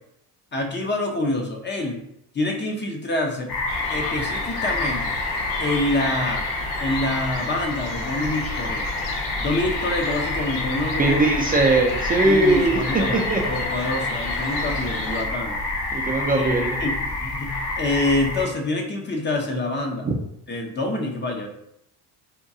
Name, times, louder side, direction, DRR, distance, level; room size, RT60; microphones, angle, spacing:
voice 1, 0.5-2.0 2.3-3.5 3.9-5.2 5.6-6.4 6.8-9.0 9.4-11.3 12.2-15.6 16.3-20.1 20.5-21.5, left 2 dB, 25° left, 2 dB, 0.7 m, -26 dB
sound 1, 3.5-18.4, left 2 dB, 55° left, 1.1 m, -28 dB
sound 2, 3.7-15.2, left 3 dB, 90° left, 0.7 m, -34 dB
voice 2, 11.0-13.4 15.9-16.8 20.1-20.2, right 2 dB, 20° right, -1 dB, 0.4 m, -20 dB
3.6 x 2.2 x 2.7 m, 0.76 s
supercardioid pair, 75°, 42 cm